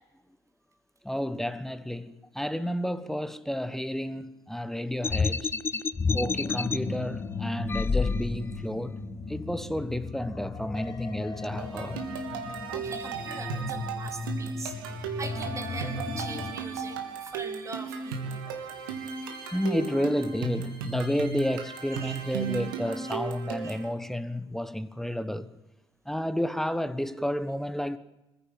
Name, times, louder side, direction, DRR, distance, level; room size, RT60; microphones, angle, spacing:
voice 1, 1.0-5.5 6.1-9.0 9.3-12.1 18.3-18.6 19.5-25.5 26.0-28.0, equal, 5° left, 1.2 m, -31 dB
sound 1, 5.0-6.8 7.7-8.6, left 4 dB, 20° left, 0.7 m, -28 dB
sound 2, 6.1-16.5, left 3 dB, 35° left, 2.6 m, -37 dB
sound 3, 11.6-23.9, right 6 dB, 70° right, 2.8 m, -36 dB
voice 2, 12.7-18.4 21.9-22.2 23.1-23.2 23.6-23.8, right 3 dB, 25° right, 3.9 m, -42 dB
25.0 x 16.0 x 9.1 m
figure-of-eight pair, 55°, 12 cm